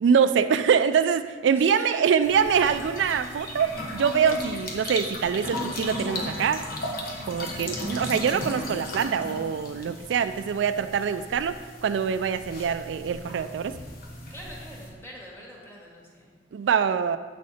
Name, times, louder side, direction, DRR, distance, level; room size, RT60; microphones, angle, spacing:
voice 1, 0.0-6.6 7.3-13.7 16.5-17.2, right 7 dB, 75° right, 10 dB, 0.3 m, -24 dB
voice 2, 1.5-2.3 14.3-16.4, equal, 15° left, -4 dB, 2.1 m, -44 dB
sound 1, 2.2-14.9, left 1 dB, 55° left, 1.3 m, -36 dB
8.5 x 6.4 x 4.2 m, 1.5 s
head